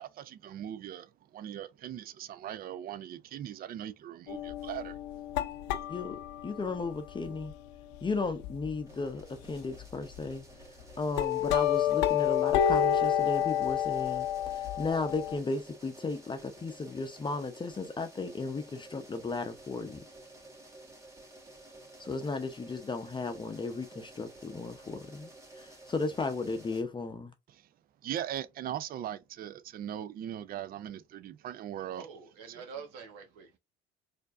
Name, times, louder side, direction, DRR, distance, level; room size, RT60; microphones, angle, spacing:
voice 1, 0.0-5.0 27.5-27.7 28.0-32.1 32.5-32.6, right 11 dB, 45° right, 0.5 m, -40 dB
sound 1, 4.3-8.8 9.2-9.3 9.7-10.3 10.8-15.4, left 10 dB, 80° left, 0.6 m, -30 dB
voice 2, 5.9-7.5 8.0-10.4 11.0-20.0 22.0-25.3 25.6-27.3, left 3 dB, 25° left, 0.7 m, -35 dB
sound 2, 8.9-26.8, right 2 dB, 15° right, 1.9 m, -53 dB
voice 3, 31.9-33.6, right 6 dB, 75° right, 1.3 m, -46 dB
4.4 x 2.6 x 2.5 m
hypercardioid pair, 70°, 21 cm